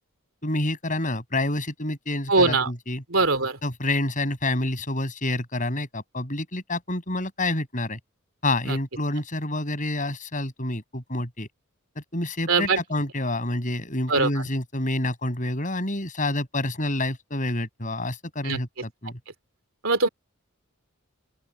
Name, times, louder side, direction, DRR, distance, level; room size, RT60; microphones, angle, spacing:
voice 1, 0.4-3.0 3.6-8.0 8.4-11.5 11.9-19.2, left 1 dB, 35° left, 6.9 m, -28 dB
voice 2, 2.3-2.7 3.1-3.6 8.7-8.8 12.5-12.8 14.1-14.3 18.4-18.6 19.8-20.1, right 3 dB, 60° right, 3.3 m, -21 dB
open air
head